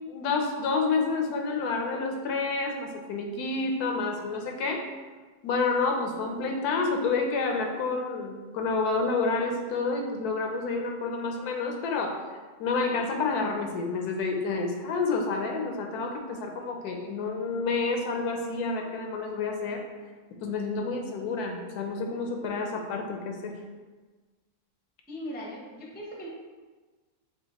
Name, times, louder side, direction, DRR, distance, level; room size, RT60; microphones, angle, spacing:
voice 1, 0.1-4.8 5.4-12.2 12.6-19.9 20.4-23.6, left 4 dB, 85° left, 3 dB, 1.2 m, -29 dB
voice 2, 25.1-26.3, equal, 10° left, -3 dB, 0.4 m, -39 dB
6.5 x 2.4 x 2.9 m, 1.3 s
omnidirectional pair, 1.6 m